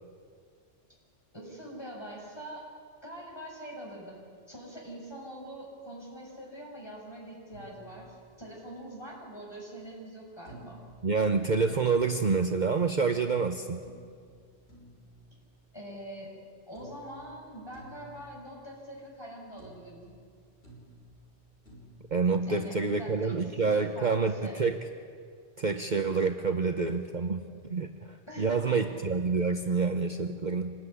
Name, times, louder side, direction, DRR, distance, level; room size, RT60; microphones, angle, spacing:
voice 1, 1.3-2.7 3.0-10.8 15.7-16.3 16.7-20.1 22.4-24.6 28.3-28.8, right 1 dB, 20° left, -2 dB, 6.6 m, -44 dB
sound 1, 7.5-9.0 10.5-13.1 13.8-16.4 16.7-19.3 19.6-23.0, right 1 dB, 60° left, 5.8 m, -55 dB
voice 2, 11.0-13.8 22.1-24.8 25.6-27.4 27.7-30.7, right 4 dB, 45° right, 6 dB, 1.0 m, -27 dB
25.5 x 20.0 x 9.8 m, 2.1 s
omnidirectional pair, 1.2 m